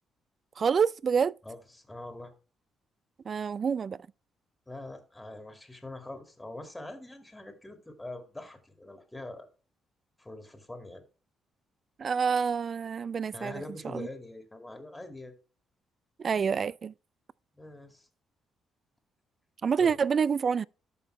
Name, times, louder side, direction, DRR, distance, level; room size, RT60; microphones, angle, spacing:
voice 1, 0.6-1.3 3.3-4.0 12.0-14.1 16.2-16.9 19.6-20.6, right 6 dB, 45° right, 0.3 m, -27 dB
voice 2, 1.4-2.3 4.7-9.5 10.2-11.0 13.3-15.3 17.6-18.1 19.8-20.0, left 2 dB, 10° left, 2.2 m, -43 dB
12.5 x 5.4 x 3.3 m
cardioid pair, 90°, 0 cm